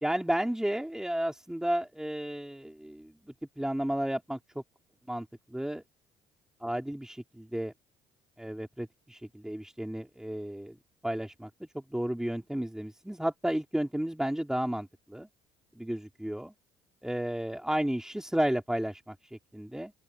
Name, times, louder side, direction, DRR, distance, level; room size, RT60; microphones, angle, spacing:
voice 1, 0.0-4.6 5.1-5.3 5.5-5.8 6.6-7.7 8.4-10.8 11.0-11.5 11.7-15.3 15.7-16.5 17.0-19.9, right 1 dB, 5° right, 4.1 m, -32 dB
open air
supercardioid pair, 75°, 14 cm